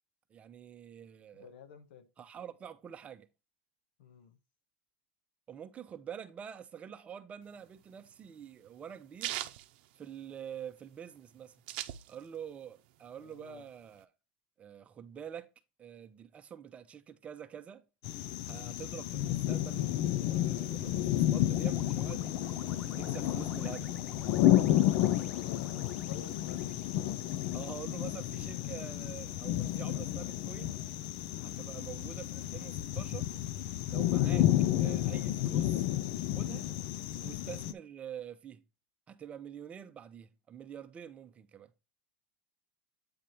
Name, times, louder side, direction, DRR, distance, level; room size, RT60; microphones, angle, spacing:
voice 1, 0.3-1.5 2.2-3.3 5.5-9.4 10.0-11.6 12.1-14.1 14.6-15.5 15.8-17.9 18.4-24.0 27.5-30.8 31.4-33.3 33.9-34.5 34.8-35.9 36.3-36.7 37.2-38.6 39.1-41.7, right 8 dB, 25° right, 0.7 m, -46 dB
voice 2, 1.3-2.1 4.0-4.4 13.2-13.7 25.3-26.7 37.2-37.3, left 7 dB, 85° left, 1.3 m, -52 dB
sound 1, 7.5-10.6 11.0-11.1 11.2-12.5 12.9-14.0, right 15 dB, 65° right, 0.7 m, -40 dB
sound 2, 18.0-37.7, left 13 dB, 55° left, 0.5 m, -31 dB
sound 3, 20.4-28.7, right 1 dB, ahead, 1.3 m, -53 dB
8.7 x 3.3 x 4.2 m
supercardioid pair, 145°, 6 cm